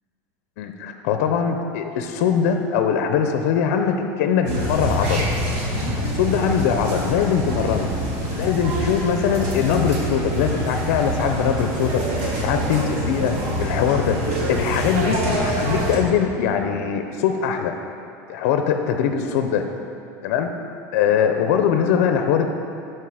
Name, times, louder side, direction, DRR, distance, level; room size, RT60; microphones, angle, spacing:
voice 1, 0.6-5.3 6.0-7.9 8.3-12.0 12.4-15.2 15.4-17.7 18.3-19.7 20.2-20.5 20.9-22.5, left 7 dB, 70° left, 6 dB, 0.6 m, -22 dB
sound 1, 4.5-16.0, equal, 65° right, 2.0 m, -25 dB
11.5 x 4.7 x 4.9 m, 2.5 s
cardioid pair, 170°, 8 cm